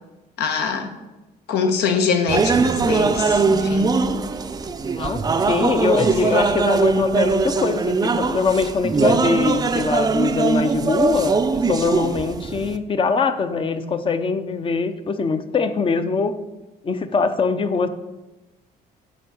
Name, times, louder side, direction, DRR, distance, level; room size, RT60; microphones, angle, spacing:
voice 1, 0.4-0.9 1.5-3.9 6.2-6.5, left 5 dB, 75° left, 5 dB, 1.2 m, -23 dB
sound 1, 2.3-12.8, right 4 dB, 25° right, 0.5 m, -21 dB
voice 2, 4.7-16.4 16.8-17.9, left 4 dB, 30° left, 10 dB, 0.6 m, -22 dB
8.9 x 3.8 x 6.9 m, 1.1 s
cardioid pair, 110°, 17 cm